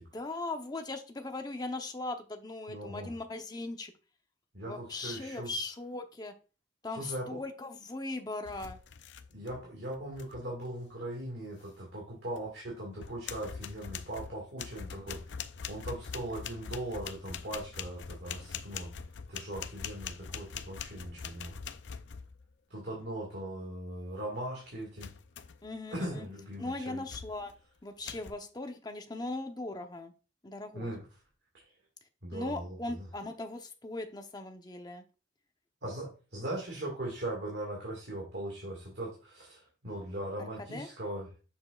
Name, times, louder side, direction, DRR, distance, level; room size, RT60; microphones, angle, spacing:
voice 1, 0.1-3.9 4.6-6.3 6.8-8.8 25.6-26.3 26.6-27.5 27.8-30.1 30.4-30.9 32.3-35.0 40.7-40.9, left 2 dB, 20° left, 5 dB, 0.8 m, -39 dB
voice 2, 2.7-3.1 4.5-5.5 7.0-7.4 9.3-15.4 15.7-18.9 19.3-21.6 22.7-25.1 25.9-27.0 30.7-31.0 32.2-33.1 35.8-41.4, right 1 dB, 60° right, -1 dB, 2.0 m, -39 dB
sound 1, 8.5-9.7 9.9-10.4 12.4-12.5 13.0-22.5 25.0-25.7 26.2-26.5 27.1-27.6 28.1-28.3, left 7 dB, 70° left, 0.5 m, -43 dB
7.0 x 6.2 x 2.4 m, 0.34 s
head